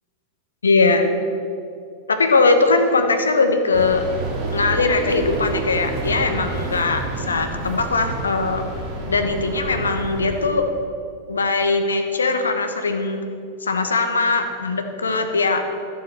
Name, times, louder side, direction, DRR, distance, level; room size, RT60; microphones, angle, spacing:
voice 1, 0.6-1.1 2.1-4.0 4.5-7.0 7.3-8.6 9.1-10.6 11.3-13.2 13.6-15.6, left 3 dB, 75° left, 6 dB, 1.1 m, -20 dB
sound 1, 3.7-10.5, right 2 dB, 40° right, 2.6 m, -29 dB
12.0 x 7.4 x 8.0 m, 2.5 s
figure-of-eight pair, 90°, 0 cm